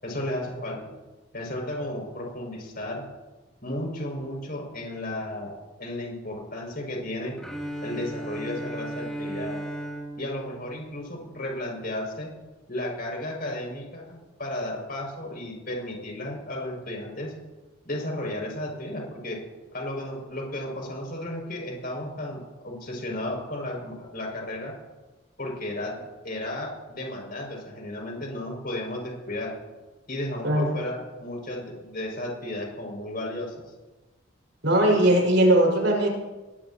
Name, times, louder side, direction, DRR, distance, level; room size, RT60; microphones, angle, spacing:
voice 1, 0.0-0.8 1.3-3.1 3.6-7.3 7.8-9.6 10.2-12.3 12.7-17.3 17.8-19.4 19.7-24.7 25.4-29.5 30.1-33.5, left 1 dB, 45° left, -1 dB, 6.2 m, -34 dB
Bowed string instrument, 7.4-11.5, right 1 dB, 5° left, 2.7 m, -36 dB
voice 2, 34.6-36.1, right 1 dB, 65° right, -1 dB, 5.4 m, -19 dB
21.0 x 19.0 x 2.9 m, 1.2 s
head